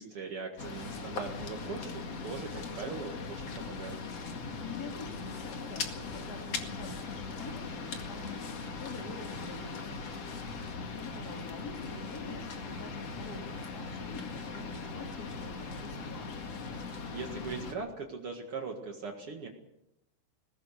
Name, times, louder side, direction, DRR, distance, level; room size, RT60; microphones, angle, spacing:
voice 1, 0.0-4.0 17.1-19.5, right 4 dB, 90° right, 2 dB, 1.2 m, -40 dB
sound 1, 0.6-17.7, left 4 dB, 50° left, 2.0 m, -40 dB
voice 2, 4.6-10.2 10.9-16.5, left 4 dB, 30° left, 3 dB, 1.8 m, -46 dB
21.0 x 19.0 x 6.7 m, 0.87 s
omnidirectional pair, 5.8 m